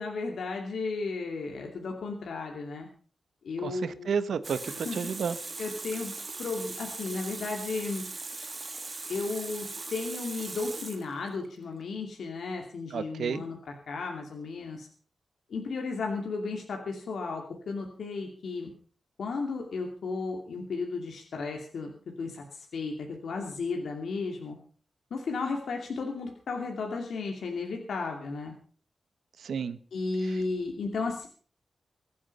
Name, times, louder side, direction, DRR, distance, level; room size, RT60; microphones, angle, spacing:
voice 1, 0.0-2.9 3.4-4.1 4.6-5.0 5.6-8.0 9.1-14.9 15.5-18.7 19.2-21.9 22.2-24.6 25.1-28.5 29.9-31.3, left 4 dB, 80° left, 2 dB, 2.7 m, -34 dB
voice 2, 3.6-5.4 12.9-13.4 29.4-29.8, right 6 dB, 85° right, 13 dB, 1.2 m, -31 dB
Water tap faucet, 4.4-11.5, right 3 dB, 30° right, 1.6 m, -39 dB
24.5 x 8.5 x 5.5 m, 0.43 s
wide cardioid pair, 170°, 0 cm